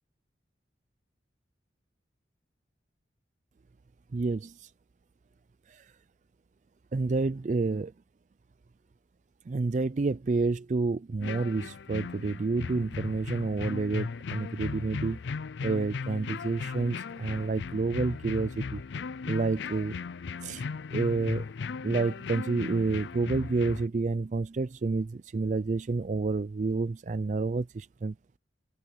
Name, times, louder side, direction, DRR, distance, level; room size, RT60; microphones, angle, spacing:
voice 1, 4.1-4.7 5.7-5.9 6.9-7.9 9.5-15.2 15.6-18.8 19.3-20.0 20.4-20.6 20.9-21.5 21.8-28.1, right 3 dB, 40° right, 0.4 m, -29 dB
sound 1, 11.2-23.9, left 5 dB, 70° left, 0.4 m, -37 dB
open air
head